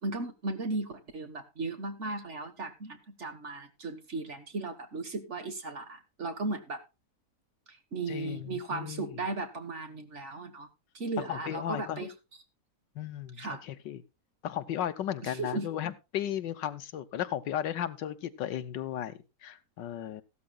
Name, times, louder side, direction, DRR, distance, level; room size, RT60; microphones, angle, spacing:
voice 1, 0.0-6.8 7.7-10.7 10.9-12.1 13.4-13.6 15.2-15.7, right 3 dB, 45° right, 8 dB, 1.7 m, -36 dB
voice 2, 8.1-9.1 11.3-12.1 12.9-14.0 14.4-20.2, left 10 dB, 80° left, 12 dB, 1.6 m, -35 dB
15.5 x 12.5 x 2.3 m, 0.26 s
omnidirectional pair, 1.9 m